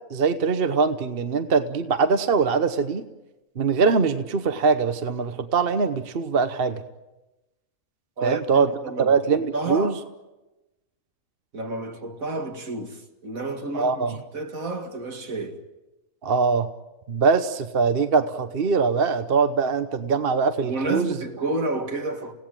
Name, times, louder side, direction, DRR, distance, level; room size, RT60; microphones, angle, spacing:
voice 1, 0.1-3.0 3.6-6.8 8.2-8.7 9.0-9.9 13.7-14.2 16.2-16.7 17.1-21.2, right 5 dB, 45° right, 1.1 m, -22 dB
voice 2, 8.2-9.1 9.5-10.0 11.5-15.6 20.6-22.3, right 2 dB, 75° right, 2.6 m, -30 dB
29.5 x 17.0 x 9.0 m
omnidirectional pair, 1.5 m